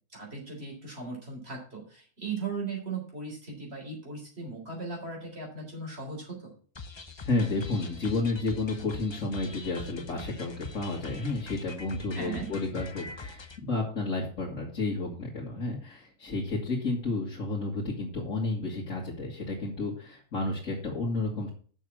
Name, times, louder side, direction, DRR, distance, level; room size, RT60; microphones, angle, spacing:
voice 1, 0.1-6.5 12.1-12.5, right 4 dB, 50° right, -1 dB, 4.4 m, -38 dB
sound 1, 6.7-13.6, left 4 dB, 30° left, 0.5 m, -43 dB
voice 2, 7.2-21.5, left 2 dB, 70° left, -5 dB, 2.5 m, -31 dB
7.1 x 6.5 x 7.5 m, 0.43 s
omnidirectional pair, 1.4 m